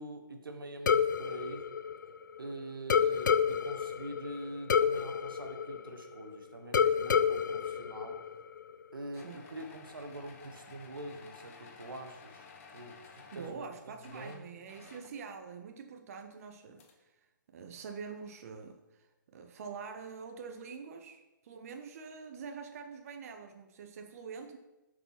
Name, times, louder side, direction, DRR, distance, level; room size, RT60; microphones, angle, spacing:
voice 1, 0.0-1.7 2.4-8.2 8.9-12.5 12.7-13.7 14.0-14.4, right 1 dB, 85° right, 6 dB, 1.3 m, -44 dB
sound 1, 0.9-2.5 2.9-6.3 6.7-8.7, left 7 dB, 65° left, 0.5 m, -29 dB
sound 2, 9.1-13.7 14.0-15.2 16.5-16.6 16.8-16.9, left 5 dB, 40° left, 1.3 m, -54 dB
voice 2, 9.1-9.4 13.3-24.6, right 5 dB, 45° right, 6 dB, 0.7 m, -46 dB
7.9 x 4.8 x 5.8 m, 1.1 s
hypercardioid pair, 150°, 11 cm